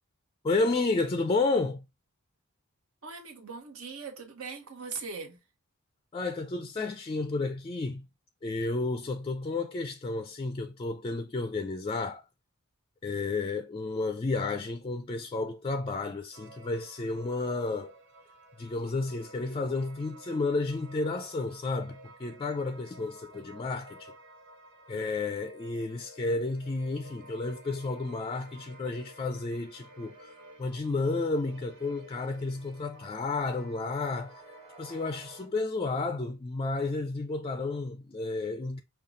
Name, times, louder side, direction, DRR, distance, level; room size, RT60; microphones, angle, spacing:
voice 1, 0.4-1.9 6.1-8.1 8.4-12.2 13.0-17.9 18.6-24.1 24.9-30.3 30.6-34.4 34.8-38.8, left 3 dB, 25° left, 0.3 m, -31 dB
voice 2, 3.0-5.4, right 5 dB, 80° right, 1.1 m, -40 dB
sound 1, 16.3-35.5, right 1 dB, 55° right, 1.0 m, -52 dB
sound 2, 27.0-35.5, right 3 dB, 25° right, 1.3 m, -60 dB
5.6 x 2.3 x 3.7 m
head